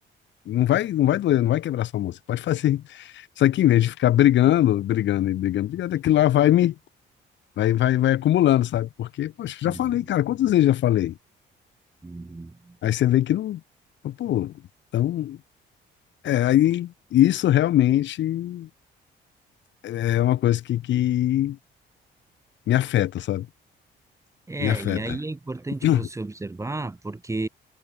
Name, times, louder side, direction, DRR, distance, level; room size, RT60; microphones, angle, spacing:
voice 1, 0.5-6.7 7.6-11.2 12.8-13.6 14.0-14.5 14.9-15.4 16.2-18.7 19.8-21.6 22.7-23.5 24.6-25.2 25.8-26.0, left 12 dB, 65° left, 0.8 m, -22 dB
voice 2, 9.6-9.9 12.0-12.8 24.5-27.5, right 2 dB, 15° right, 1.0 m, -33 dB
cardioid pair, 90°, 20 cm